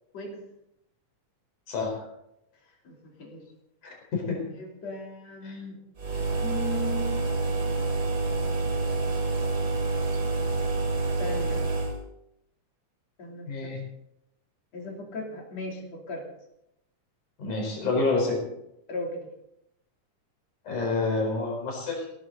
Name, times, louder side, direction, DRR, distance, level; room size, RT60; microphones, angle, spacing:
voice 1, 1.7-2.0 3.8-4.4 5.4-5.6 13.5-13.8 17.4-18.4 20.6-22.1, left 3 dB, 75° left, 1 dB, 6.0 m, -28 dB
voice 2, 2.8-3.5 4.6-5.8 6.4-7.2 11.2-11.7 13.2-13.7 14.7-16.2 18.9-19.3, left 1 dB, 55° left, 0 dB, 4.2 m, -37 dB
sound 1, 6.0-12.0, right 3 dB, 30° right, 2.9 m, -27 dB
17.0 x 14.0 x 4.0 m, 0.82 s
omnidirectional pair, 3.5 m